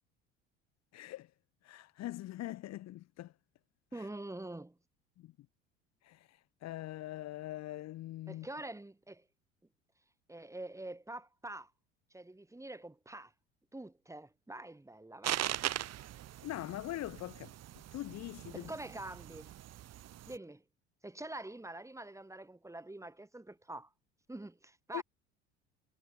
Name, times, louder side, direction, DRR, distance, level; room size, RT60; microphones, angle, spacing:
voice 1, 0.9-1.3 1.6-3.3 5.2-5.3 6.0-6.2 6.6-8.5 16.4-17.5 17.9-18.7 24.9-25.0, left 15 dB, 50° left, 3.5 m, -42 dB
voice 2, 3.9-4.8 8.3-9.2 10.3-11.7 12.1-13.3 13.7-15.5 18.6-19.5 20.3-20.6 21.0-23.9 24.3-25.0, right 2 dB, 10° right, 4.9 m, -45 dB
sound 1, 15.2-20.4, right 13 dB, 50° right, 7.4 m, -40 dB
figure-of-eight pair, 65°, 34 cm